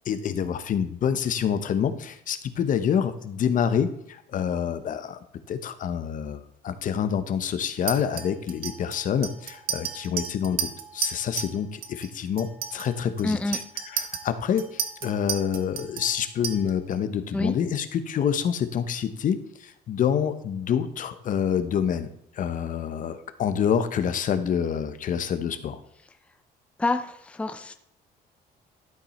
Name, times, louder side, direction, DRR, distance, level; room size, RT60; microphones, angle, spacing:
voice 1, 0.0-5.2 5.5-13.6 13.9-22.1 22.3-25.8, left 8 dB, 50° left, 11 dB, 0.9 m, -27 dB
Chink clink, 7.9-11.6 11.8-12.1 12.4-16.9, right 8 dB, 65° right, 1.1 m, -33 dB
voice 2, 13.2-13.6 17.3-17.5 26.8-27.7, left 2 dB, 5° left, 7 dB, 0.6 m, -27 dB
12.0 x 5.4 x 4.3 m, 0.74 s
cardioid pair, 110°, 17 cm